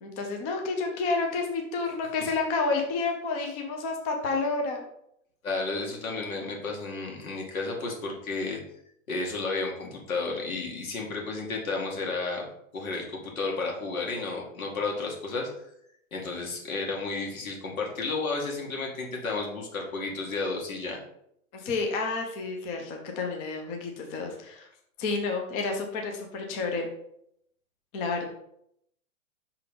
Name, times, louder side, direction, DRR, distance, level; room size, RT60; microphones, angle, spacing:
voice 1, 0.0-4.8 21.5-24.7 25.0-26.9 27.9-28.3, left 3 dB, 15° left, 2 dB, 0.4 m, -30 dB
voice 2, 5.4-8.6 9.1-12.4 12.7-15.5 16.1-21.0, left 3 dB, 85° left, 0 dB, 2.2 m, -32 dB
5.6 x 3.8 x 5.1 m, 0.74 s
hypercardioid pair, 140°, 41 cm